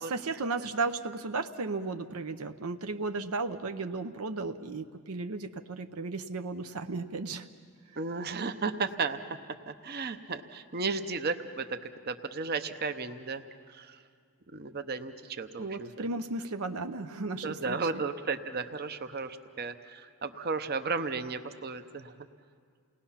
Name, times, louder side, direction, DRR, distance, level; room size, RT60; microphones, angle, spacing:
voice 1, 0.0-7.5 15.6-17.8, right 3 dB, 80° right, 8 dB, 0.7 m, -34 dB
voice 2, 8.0-9.2 9.7-14.0 14.5-16.1 17.4-22.1, right 4 dB, 45° right, 9 dB, 0.8 m, -34 dB
29.0 x 19.0 x 5.8 m, 2.1 s
head